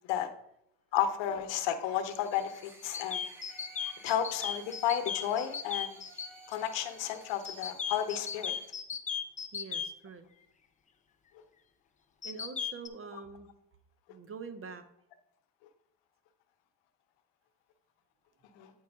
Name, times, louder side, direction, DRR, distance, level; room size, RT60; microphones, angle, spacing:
voice 1, 0.9-3.2 4.0-6.0 6.5-8.5 18.5-18.7, left 10 dB, 65° left, 9 dB, 0.9 m, -32 dB
sound 1, 2.0-8.7, equal, 5° right, 1.5 m, -56 dB
sound 2, 2.9-6.3 7.5-9.9 12.2-12.9, left 7 dB, 15° left, 0.5 m, -36 dB
Wind instrument woodwind instrument, 3.5-7.7, right 3 dB, 60° right, 2.4 m, -58 dB
voice 2, 9.5-10.2 12.2-13.5 14.1-14.8, right 5 dB, 30° right, 10 dB, 0.7 m, -45 dB
8.8 x 4.6 x 3.5 m, 0.75 s
supercardioid pair, 95°, 46 cm